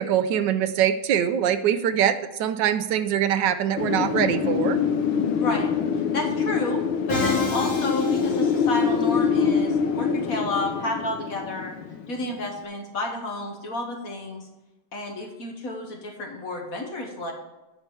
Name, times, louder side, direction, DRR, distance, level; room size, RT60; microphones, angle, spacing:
voice 1, 0.0-4.8, right 9 dB, 70° right, 11 dB, 1.1 m, -23 dB
Wind, 3.8-12.5, left 6 dB, 85° left, 1.7 m, -25 dB
voice 2, 5.4-5.7 6.1-6.8 7.1-11.8 12.1-14.5 14.9-17.3, left 2 dB, 50° left, 2 dB, 1.3 m, -30 dB
Musical instrument, 7.1-9.2, left 2 dB, 25° left, 2.5 m, -30 dB
9.9 x 4.6 x 6.9 m, 1.0 s
omnidirectional pair, 2.3 m